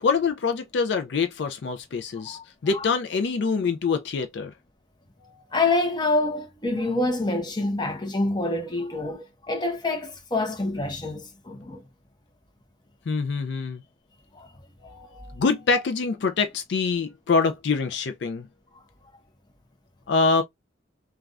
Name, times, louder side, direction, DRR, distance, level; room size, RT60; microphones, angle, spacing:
voice 1, 0.0-4.5 5.2-5.4 13.1-13.8 14.8-18.5 20.1-20.4, left 4 dB, 60° left, 0.4 m, -25 dB
voice 2, 5.5-11.8 14.3-14.5, left 2 dB, 20° left, 0.7 m, -26 dB
3.3 x 2.3 x 2.3 m
head